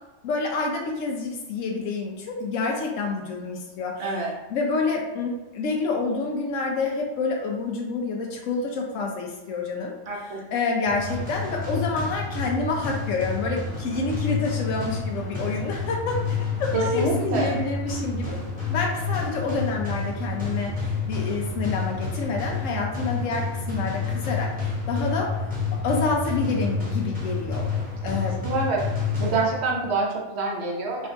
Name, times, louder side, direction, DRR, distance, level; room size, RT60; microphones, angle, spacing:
voice 1, 0.2-4.1 4.5-10.0 10.5-16.2 16.6-18.4 18.7-25.3 25.7-27.7 28.0-28.5, left 4 dB, 85° left, 0 dB, 1.0 m, -28 dB
voice 2, 4.0-4.3 10.1-10.4 16.7-17.6 28.2-28.8 29.2-31.1, right 3 dB, 60° right, -1 dB, 1.1 m, -26 dB
sound 1, 10.9-29.8, left 4 dB, 5° right, 1.0 m, -29 dB
4.7 x 2.7 x 3.3 m, 1.0 s
omnidirectional pair, 1.3 m